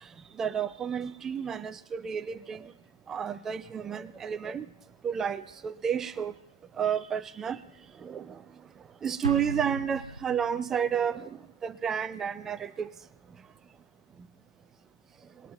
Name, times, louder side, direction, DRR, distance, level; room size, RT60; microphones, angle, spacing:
voice 1, 0.4-2.7 3.1-4.7 5.0-6.3 6.8-7.6 8.0-8.4 9.0-12.9, right 8 dB, 15° right, 14 dB, 0.4 m, -31 dB
Explosion, 9.2-10.9, right 1 dB, 85° right, 0.6 m, -37 dB
20.5 x 7.8 x 3.9 m, 0.82 s
figure-of-eight pair, 125°, 3 cm